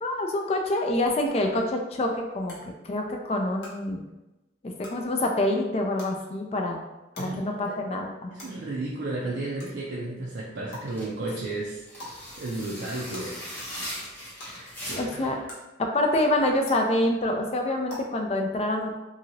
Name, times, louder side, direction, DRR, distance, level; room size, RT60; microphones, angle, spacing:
voice 1, 0.0-2.5 2.8-4.0 4.6-6.8 7.2-8.3 15.0-15.4 15.9-19.0, left 1 dB, 35° left, 2 dB, 0.4 m, -26 dB
sound 1, 1.3-1.4 2.5-2.6 3.6-3.7 4.8-4.9 6.0-6.1 7.1-7.2 8.4-8.5 9.6-9.7 10.7-10.8 12.0-12.1 13.1-13.2 14.4-14.5 15.5-15.6 16.6-16.7 17.9-18.0, left 2 dB, 60° left, 1.0 m, -41 dB
voice 2, 7.2-7.8 8.3-11.8 12.4-13.4 14.5-15.4, right 2 dB, 65° right, -5 dB, 0.4 m, -33 dB
sound 2, 10.8-15.3, equal, 10° left, 0.7 m, -39 dB
2.8 x 2.7 x 2.8 m, 1.0 s
head